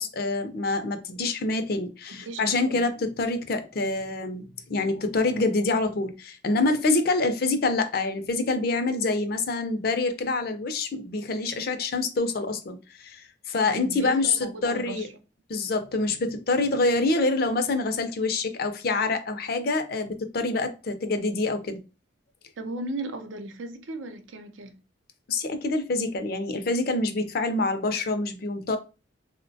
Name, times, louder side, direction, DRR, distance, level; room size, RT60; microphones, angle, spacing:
voice 1, 0.0-14.4 14.6-15.1 15.5-21.8 25.3-28.8, left 3 dB, 50° left, 0.5 m, -26 dB
voice 2, 2.2-2.8 13.7-15.1 22.6-24.8, right 2 dB, 80° right, 0.5 m, -36 dB
3.7 x 2.1 x 2.6 m
head